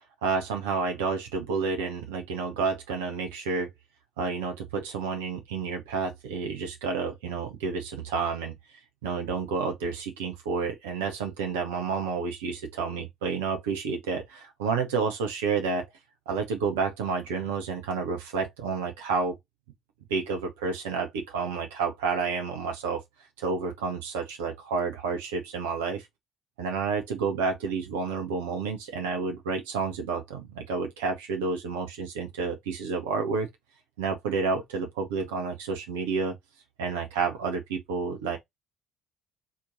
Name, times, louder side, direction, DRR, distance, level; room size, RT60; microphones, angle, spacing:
voice 1, 0.2-3.7 4.2-8.5 9.0-15.9 16.3-19.4 20.1-23.0 23.4-26.1 26.6-33.5 34.0-36.4 36.8-38.4, right 5 dB, 75° right, 0.9 m, -30 dB
4.2 x 3.0 x 3.9 m
figure-of-eight pair, 50°, 0 cm